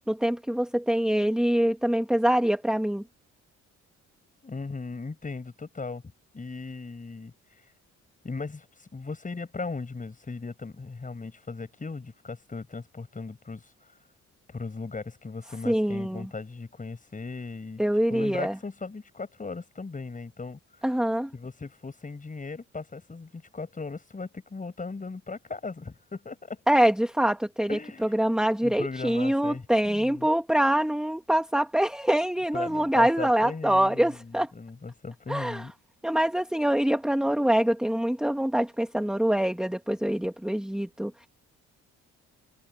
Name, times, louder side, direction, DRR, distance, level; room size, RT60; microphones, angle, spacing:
voice 1, 0.1-3.0 15.7-16.3 17.8-18.5 20.8-21.3 26.7-27.8 28.1-34.5 35.3-35.7 36.0-41.3, right 1 dB, ahead, 1.9 m, -24 dB
voice 2, 4.4-6.0 6.3-7.3 8.2-13.6 14.5-17.8 18.1-20.6 21.3-26.6 27.7-28.2 28.6-30.3 32.5-35.7, left 4 dB, 25° left, 7.7 m, -37 dB
cardioid pair, 90°, 30 cm